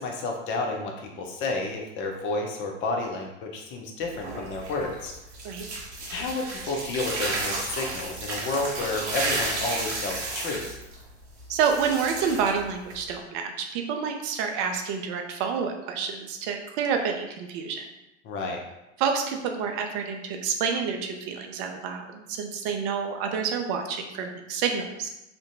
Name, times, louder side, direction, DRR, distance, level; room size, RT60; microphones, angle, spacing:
voice 1, 0.0-5.1 6.1-10.8 18.2-18.6, left 3 dB, 35° left, 1 dB, 0.5 m, -31 dB
sound 1, 4.0-13.2, right 2 dB, 65° right, 0.7 m, -33 dB
voice 2, 11.5-17.9 19.0-25.1, right 6 dB, 40° right, 4 dB, 0.4 m, -28 dB
2.5 x 2.1 x 2.6 m, 0.93 s
figure-of-eight pair, 75°, 36 cm